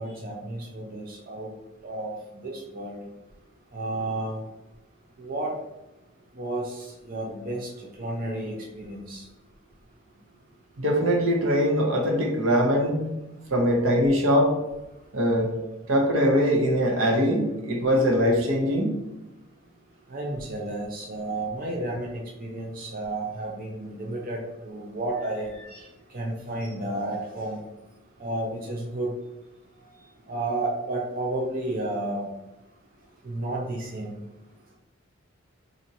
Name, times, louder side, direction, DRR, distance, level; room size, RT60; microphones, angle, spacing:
voice 1, 0.0-1.5 1.8-3.0 3.7-4.5 5.2-5.6 6.4-9.3 17.8-17.9 20.1-25.9 26.1-27.6 28.2-29.1 30.3-32.3 33.2-34.2, right 2 dB, 45° right, -2 dB, 0.6 m, -32 dB
voice 2, 10.8-13.1 13.5-14.5 15.1-15.5 15.9-18.9, equal, 75° right, 0 dB, 0.8 m, -22 dB
4.2 x 2.6 x 2.8 m, 0.99 s
head